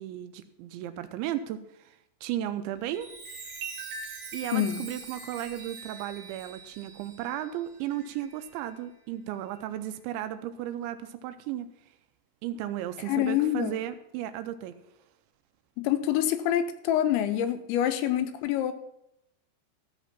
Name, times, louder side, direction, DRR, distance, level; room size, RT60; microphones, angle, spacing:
voice 1, 0.0-3.1 4.3-11.7 12.4-14.8, right 12 dB, 85° right, 10 dB, 2.8 m, -35 dB
Chime, 2.8-8.7 9.3-9.6, right 4 dB, 55° right, 2.4 m, -43 dB
voice 2, 4.5-4.9 13.1-13.8 15.8-18.7, left 11 dB, 85° left, 9 dB, 2.8 m, -26 dB
14.5 x 6.0 x 5.8 m, 0.81 s
omnidirectional pair, 5.4 m